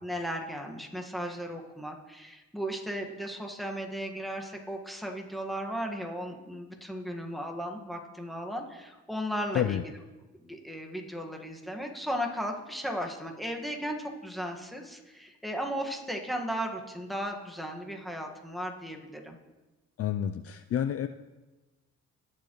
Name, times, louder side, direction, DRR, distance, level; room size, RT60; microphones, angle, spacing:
voice 1, 0.0-9.9 10.4-19.4, equal, ahead, 1 dB, 1.6 m, -36 dB
voice 2, 20.0-21.1, left 10 dB, 50° left, 10 dB, 0.5 m, -29 dB
19.0 x 7.3 x 3.1 m, 1.1 s
cardioid pair, 90°, 30 cm